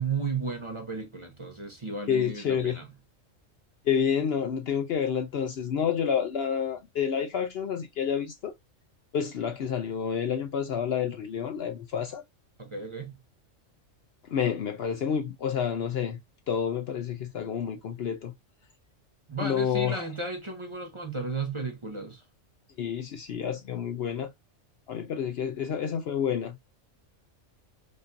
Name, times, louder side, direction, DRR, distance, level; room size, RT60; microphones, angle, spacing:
voice 1, 0.0-2.8 12.6-13.2 19.3-22.2, right 4 dB, 25° right, 0.8 m, -34 dB
voice 2, 2.1-2.8 3.9-8.5 9.1-12.2 14.2-16.2 16.5-18.3 19.4-20.0 22.8-24.3 24.9-26.6, left 8 dB, 65° left, 0.7 m, -29 dB
5.0 x 2.6 x 2.5 m
omnidirectional pair, 1.3 m